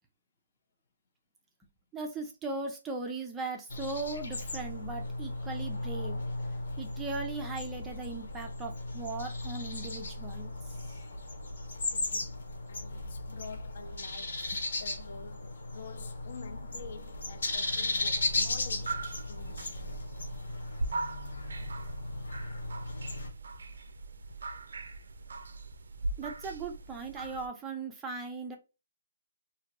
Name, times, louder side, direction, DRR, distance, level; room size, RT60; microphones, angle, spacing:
voice 1, 1.9-6.2 6.8-10.5 26.2-28.6, right 3 dB, 5° right, 0.4 m, -38 dB
sound 1, 3.7-23.3, left 2 dB, 65° left, 1.0 m, -36 dB
voice 2, 11.9-20.0, left 5 dB, 50° left, 0.5 m, -48 dB
sound 2, 18.2-27.5, right 3 dB, 70° right, 0.5 m, -40 dB
2.8 x 2.5 x 2.8 m
hypercardioid pair, 170°, 0 cm